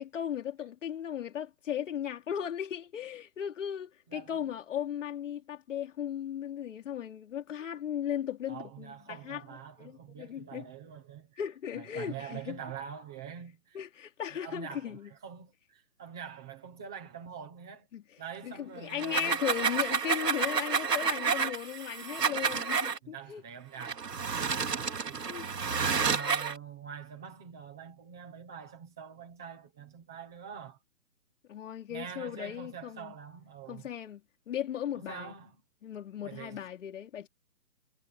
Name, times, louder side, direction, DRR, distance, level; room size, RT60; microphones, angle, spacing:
voice 1, 0.0-9.4 9.8-10.7 11.4-12.6 13.7-15.1 17.9-18.0 18.4-23.4 25.3-25.5 26.0-26.1 31.5-33.1 33.7-34.2 34.5-35.3 35.8-37.3, left 10 dB, 50° left, 3.3 m, -37 dB
voice 2, 4.1-4.5 8.5-11.4 11.7-13.8 14.3-17.9 18.2-19.4 23.0-25.3 25.7-30.8 31.9-33.9 34.9-35.6 36.2-36.6, right 7 dB, 5° right, 0.5 m, -45 dB
sound 1, 18.9-23.0 23.8-26.6, right 5 dB, 90° right, 2.9 m, -30 dB
hypercardioid pair, 150°, 47 cm